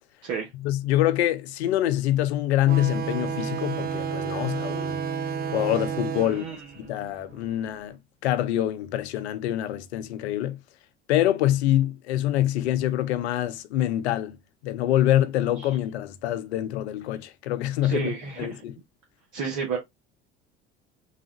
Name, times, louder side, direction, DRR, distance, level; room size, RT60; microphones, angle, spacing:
voice 1, 0.5-5.0 5.5-10.6 11.1-14.4 14.6-18.8, left 13 dB, 85° left, 0.6 m, -25 dB
sound 1, 2.7-7.8, right 6 dB, 30° right, 0.4 m, -31 dB
voice 2, 6.2-6.6 17.8-18.6 19.3-19.8, right 6 dB, 60° right, 1.3 m, -31 dB
4.0 x 2.3 x 3.8 m
hypercardioid pair, 70°, 32 cm